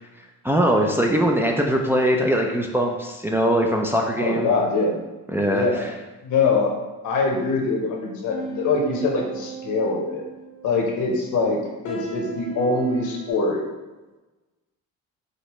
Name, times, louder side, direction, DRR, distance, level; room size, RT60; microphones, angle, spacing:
voice 1, 0.4-4.5 5.3-5.9, equal, 5° right, 0 dB, 0.4 m, -21 dB
voice 2, 4.1-5.0 5.5-5.8 6.2-6.7 7.0-10.2 10.6-13.6, left 3 dB, 70° left, 0 dB, 1.1 m, -23 dB
sound 1, 8.3-13.3, right 4 dB, 90° left, 1.4 m, -37 dB
5.2 x 2.7 x 3.1 m, 1.1 s
cardioid pair, 100°, 31 cm